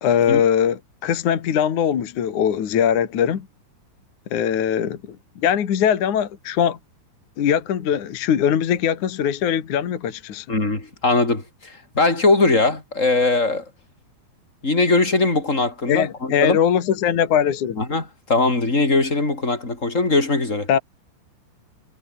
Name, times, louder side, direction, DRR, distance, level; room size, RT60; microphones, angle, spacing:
voice 1, 0.0-3.5 4.3-5.2 5.4-6.8 7.4-10.5 15.9-17.8 20.7-20.8, left 9 dB, 50° left, 2.7 m, -21 dB
voice 2, 10.5-13.7 14.6-16.6 17.8-20.7, left 3 dB, 15° left, 5.2 m, -20 dB
omnidirectional pair, 5.8 m